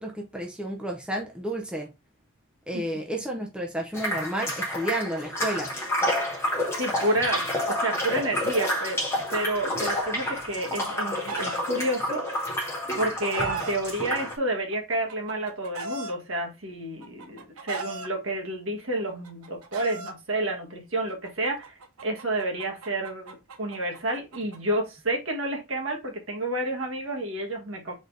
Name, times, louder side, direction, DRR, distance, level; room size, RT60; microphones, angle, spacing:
voice 1, 0.0-1.9 2.7-5.7, right 1 dB, 5° right, 0 dB, 0.7 m, -31 dB
sound 1, 3.9-14.4, left 1 dB, 10° left, 1.3 m, -29 dB
voice 2, 6.8-9.0 9.3-12.2 13.0-27.9, right 1 dB, 65° right, 1 dB, 1.6 m, -30 dB
Chicken rooster, 10.5-11.6 12.7-13.7 14.7-16.1 17.0-18.1 19.1-20.1 21.2-24.6, right 3 dB, 80° right, 0.8 m, -37 dB
4.1 x 3.9 x 3.2 m, 0.25 s
head